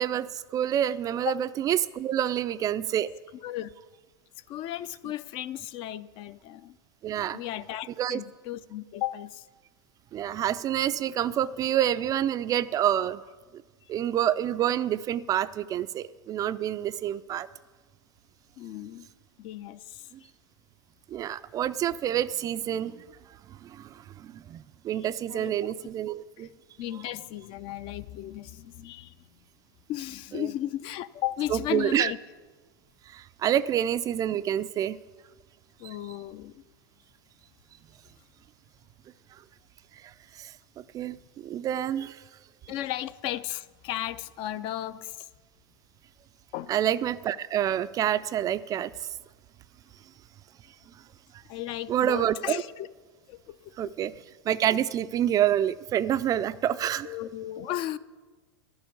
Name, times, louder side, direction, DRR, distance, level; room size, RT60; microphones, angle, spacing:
voice 1, 0.0-3.1 7.0-7.4 8.0-8.2 10.1-13.2 13.9-17.5 21.1-23.0 23.5-26.5 30.3-30.5 31.5-32.1 33.1-35.0 35.8-35.9 40.0-42.2 46.7-48.9 51.9-52.6 53.8-54.1 54.5-57.1, right 11 dB, 30° right, 0.3 m, -28 dB
voice 2, 4.5-6.8 7.3-9.5 18.6-19.1 19.4-20.3 24.9-25.5 26.4-26.5 26.8-29.2 29.9-32.2 35.8-36.6 42.7-45.3 46.5-46.7 51.5-52.9 53.3-53.9 57.0-58.0, left 13 dB, 40° left, 0.4 m, -35 dB
11.5 x 7.2 x 8.3 m
hypercardioid pair, 105°, 13 cm